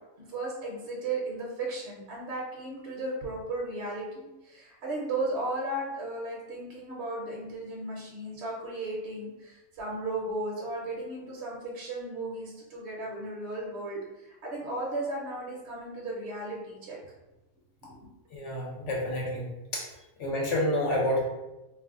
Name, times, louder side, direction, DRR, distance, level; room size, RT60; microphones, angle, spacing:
voice 1, 0.2-17.0 17.8-17.9, right 2 dB, 60° right, -3 dB, 0.9 m, -35 dB
voice 2, 18.3-19.4 19.7-19.9 20.2-21.2, left 1 dB, 65° left, -3 dB, 0.9 m, -28 dB
2.5 x 2.1 x 3.5 m, 1.0 s
omnidirectional pair, 1.4 m